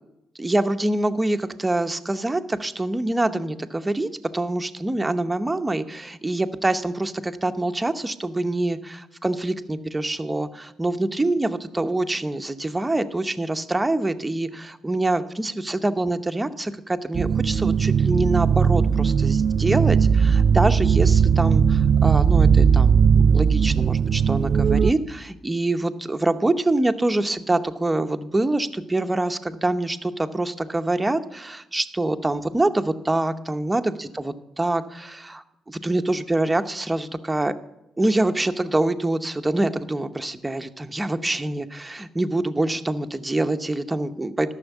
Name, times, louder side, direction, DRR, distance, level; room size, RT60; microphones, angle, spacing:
voice 1, 0.3-37.5 38.0-44.5, right 2 dB, 15° right, 8 dB, 0.8 m, -25 dB
sound 1, 17.1-24.9, right 6 dB, 50° right, 0.4 m, -18 dB
12.5 x 6.4 x 8.2 m, 0.88 s
cardioid pair, 90°, 0 cm